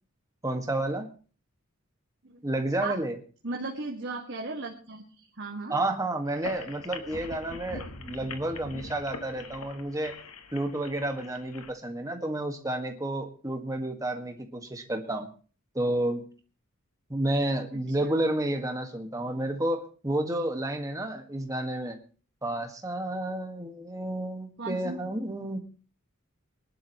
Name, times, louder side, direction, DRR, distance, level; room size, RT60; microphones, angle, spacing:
voice 1, 0.4-1.1 2.4-3.1 5.7-10.1 10.5-15.3 15.8-16.2 17.1-22.0 22.4-25.6, right 1 dB, 15° right, 4 dB, 1.7 m, -30 dB
voice 2, 3.4-5.7 24.6-25.0, right 3 dB, 55° right, 0 dB, 1.9 m, -36 dB
sound 1, 6.3-11.7, left 3 dB, 75° left, 1.3 m, -42 dB
23.5 x 11.5 x 3.1 m, 0.39 s
head